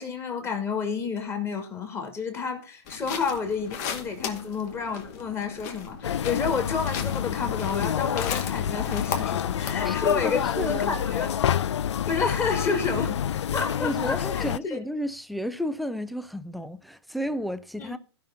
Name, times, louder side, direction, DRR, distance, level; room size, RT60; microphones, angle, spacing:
voice 1, 0.0-11.3 12.1-13.2 13.5-14.8 17.8-18.0, left 5 dB, 15° left, 2.6 m, -30 dB
sound 1, 2.9-9.9, left 6 dB, 35° left, 2.1 m, -37 dB
sound 2, 6.0-14.6, left 9 dB, 75° left, 0.5 m, -28 dB
voice 2, 9.8-11.1 13.8-18.0, equal, ahead, 0.4 m, -32 dB
16.0 x 5.9 x 3.9 m
hypercardioid pair, 150°, 15 cm